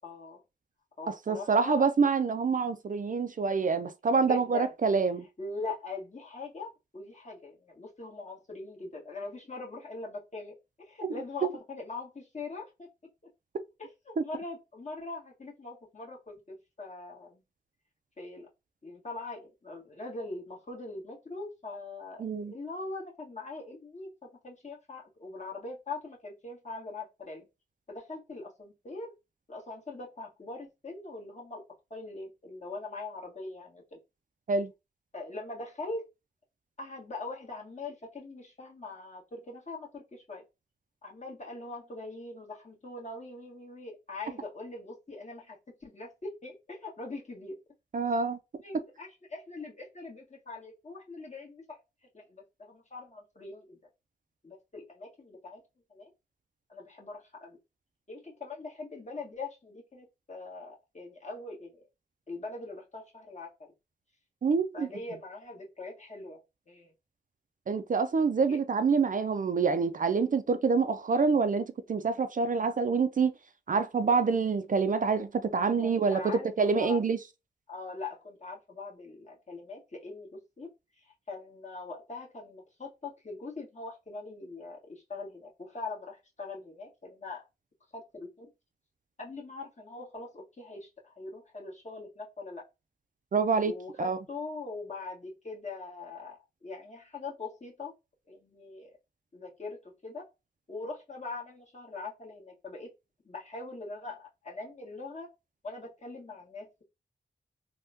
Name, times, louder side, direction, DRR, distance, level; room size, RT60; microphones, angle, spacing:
voice 1, 0.0-0.4 1.0-1.8 4.2-4.7 5.4-12.9 13.8-17.4 18.2-18.5 18.8-27.5 27.9-29.1 29.5-31.6 31.9-34.0 35.1-36.0 36.8-40.4 41.0-47.6 48.6-51.8 52.1-53.8 54.4-55.6 55.9-56.1 56.7-57.6 58.1-61.8 62.3-63.7 64.7-66.4 66.7-66.9 68.5-68.6 75.8-77.1 77.7-80.7 81.0-87.5 87.9-88.5 89.2-92.6 93.6-97.9 98.3-99.0 99.3-100.3 100.7-102.9 103.2-105.3 105.6-106.8, left 3 dB, 40° left, 1.5 m, -42 dB
voice 2, 1.1-5.2 11.0-11.1 14.2-14.3 22.2-22.5 34.5-34.7 47.9-48.4 64.4-64.9 67.7-73.3 73.7-77.2 93.3-94.2, right 5 dB, 50° right, 0.4 m, -26 dB
3.4 x 2.2 x 2.7 m
cardioid pair, 60°, 18 cm